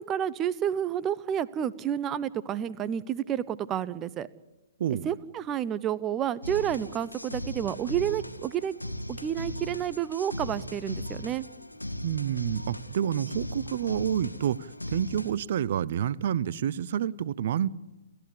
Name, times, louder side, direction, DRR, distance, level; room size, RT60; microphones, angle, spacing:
voice 1, 0.0-4.3 5.0-8.7 9.1-11.4, right 10 dB, 20° right, 16 dB, 0.9 m, -30 dB
sound 1, 6.4-15.3, left 1 dB, 90° left, 1.8 m, -38 dB
voice 2, 12.0-17.7, right 9 dB, 50° right, 21 dB, 0.8 m, -29 dB
30.0 x 14.0 x 8.5 m, 1.0 s
figure-of-eight pair, 125°, 0 cm